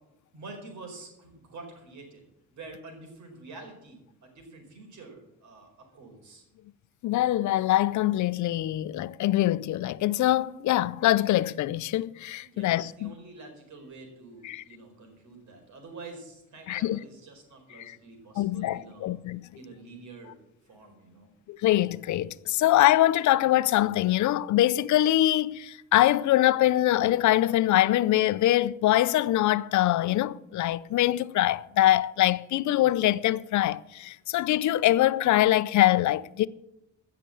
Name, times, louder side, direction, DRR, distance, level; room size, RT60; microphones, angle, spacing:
voice 1, 0.3-2.2 2.5-6.4 12.4-19.1 19.5-20.3 20.7-21.3, right 3 dB, 70° right, 4.8 m, -47 dB
voice 2, 7.0-13.1 14.4-14.6 16.7-17.0 17.8-18.0 18.4-19.5 21.6-36.5, left 14 dB, 70° left, 0.6 m, -23 dB
15.5 x 6.8 x 7.7 m
cardioid pair, 90°, 30 cm